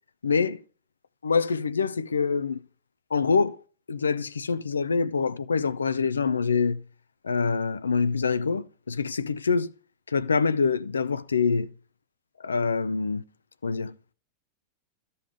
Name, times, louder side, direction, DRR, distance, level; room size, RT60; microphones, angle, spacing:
voice 1, 0.2-0.6 1.2-2.6 3.1-3.6 3.9-6.8 7.2-9.7 10.1-11.7 12.4-13.2 13.6-14.1, left 5 dB, 85° left, 0.5 m, -25 dB
13.5 x 5.5 x 5.0 m
figure-of-eight pair, 95°, 0 cm